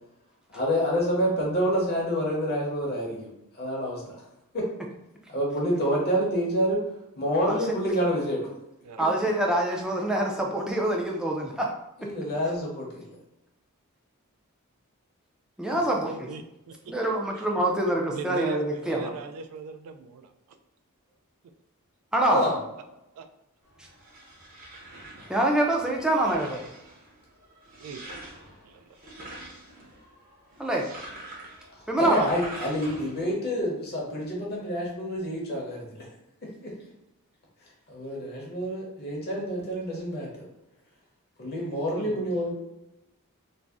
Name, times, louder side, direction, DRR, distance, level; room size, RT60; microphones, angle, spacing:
voice 1, 0.5-3.3 3.5-4.2 4.5-4.7 5.3-6.8 7.2-8.5 12.0-13.1 22.3-22.5 25.2-25.3 32.0-36.1 36.6-36.7 37.9-40.4 41.4-42.5, equal, 45° left, -3 dB, 0.7 m, -27 dB
voice 2, 9.0-11.7 15.6-16.3 16.9-19.1 22.1-22.4 25.3-26.6 30.6-30.9 31.9-32.3 41.9-42.1, right 1 dB, 5° right, -1 dB, 0.3 m, -25 dB
voice 3, 16.3-16.9 17.4-17.5 18.1-20.3 23.2-23.3 27.8-28.0 28.6-28.9, right 4 dB, 80° right, 8 dB, 0.3 m, -38 dB
sound 1, 23.6-33.3, right 1 dB, 40° right, 0.7 m, -45 dB
2.6 x 2.0 x 3.4 m, 0.89 s
head